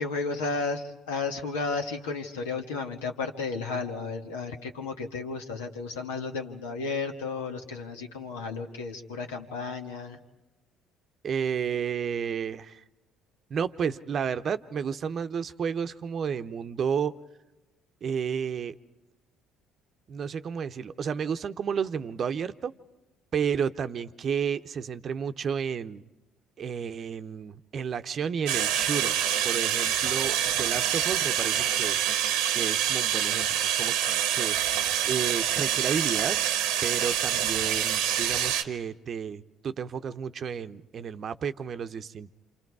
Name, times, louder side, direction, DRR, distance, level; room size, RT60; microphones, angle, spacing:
voice 1, 0.0-10.2, left 4 dB, 85° left, 3 dB, 1.7 m, -33 dB
voice 2, 11.2-12.8 13.5-17.1 18.0-18.7 20.1-22.7 23.3-26.0 26.6-32.0 32.5-33.5 33.8-34.0 34.3-34.6 35.1-36.4 36.8-42.3, right 7 dB, 50° right, 11 dB, 0.8 m, -31 dB
sound 1, 28.5-38.6, right 10 dB, 75° right, 0.9 m, -26 dB
27.5 x 27.5 x 4.8 m, 1.0 s
hypercardioid pair, 60°, 0 cm